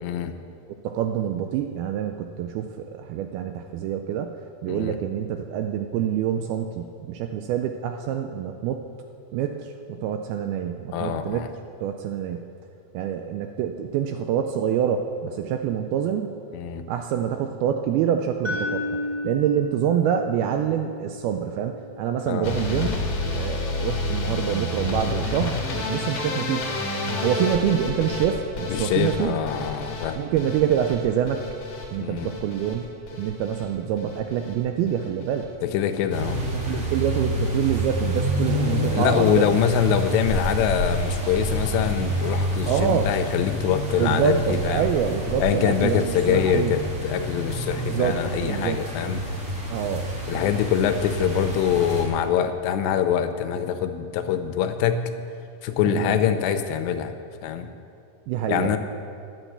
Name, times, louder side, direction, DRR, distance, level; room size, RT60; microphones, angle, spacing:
voice 1, 0.0-0.3 4.7-5.0 10.9-11.5 16.5-16.8 22.3-22.5 28.7-30.2 32.0-32.3 35.6-36.4 38.9-44.9 45.4-49.2 50.3-55.1 55.6-57.1 57.4-57.7 58.5-58.8, left 9 dB, 85° left, 9 dB, 2.9 m, -24 dB
voice 2, 0.8-4.4 4.6-8.8 9.3-11.5 11.8-12.5 12.9-16.3 16.9-18.8 19.2-22.9 23.3-26.7 27.2-29.3 30.2-31.4 31.9-35.5 36.5-39.4 42.7-43.1 44.0-46.7 47.8-48.2 48.4-48.8 49.7-50.1 55.8-56.2 58.3-58.8, right 9 dB, 80° right, 6 dB, 2.2 m, -26 dB
sound 1, 18.4-22.5, left 2 dB, 10° right, 2.3 m, -33 dB
sound 2, 22.4-34.6 34.9-35.4 35.8-36.3 36.7-36.9 37.2-37.3 37.6-37.7, left 3 dB, 50° left, 2.0 m, -30 dB
sound 3, 36.1-52.0, equal, 35° right, 1.3 m, -28 dB
11.5 x 8.4 x 8.0 m, 2.4 s
omnidirectional pair, 4.9 m